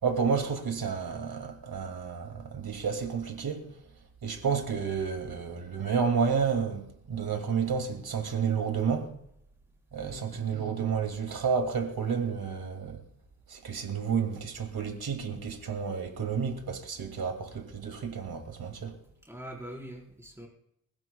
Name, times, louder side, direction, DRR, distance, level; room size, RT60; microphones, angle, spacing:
voice 1, 0.0-3.7 4.2-9.1 9.9-13.0 13.5-18.9, right 6 dB, 85° right, 2.7 m, -30 dB
voice 2, 10.0-10.4 19.2-20.5, right 1 dB, 5° right, 4.7 m, -43 dB
25.5 x 15.5 x 2.4 m
wide cardioid pair, 85°, 36 cm